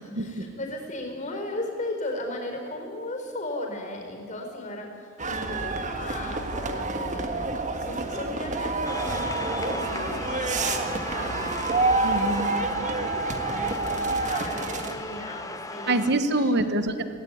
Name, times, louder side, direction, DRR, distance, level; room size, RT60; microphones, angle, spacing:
voice 1, 0.0-7.4 7.8-11.5 13.1-15.9 16.2-16.7, left 1 dB, 35° left, 2 dB, 4.5 m, -36 dB
sound 1, 5.2-14.3, equal, 85° left, 6.2 m, -41 dB
sound 2, 5.2-15.0, right 3 dB, 40° right, 1.6 m, -28 dB
sound 3, 8.8-16.1, left 3 dB, 15° left, 1.0 m, -36 dB
voice 2, 12.0-12.6 15.9-17.0, right 1 dB, 55° right, 10 dB, 1.3 m, -25 dB
17.5 x 17.5 x 9.6 m, 2.5 s
head